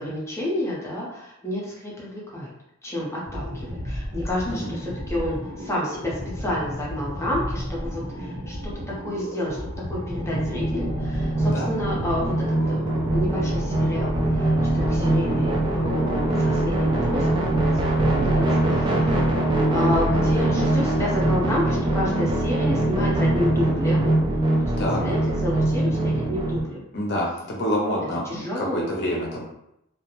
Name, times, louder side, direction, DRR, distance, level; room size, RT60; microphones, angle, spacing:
voice 1, 0.0-2.5 2.8-8.6 9.0-9.6 9.9-12.3 12.7-17.3 17.5-19.2 19.7-24.1 24.6-26.8 28.3-28.9, left 1 dB, 15° left, -5 dB, 0.7 m, -30 dB
sound 1, 3.3-20.6, equal, 70° right, 1.3 m, -34 dB
sound 2, 10.1-26.6, right 1 dB, 20° right, 0.4 m, -22 dB
voice 2, 26.9-29.4, equal, 55° left, -2 dB, 0.6 m, -27 dB
2.3 x 2.1 x 2.9 m, 0.81 s
head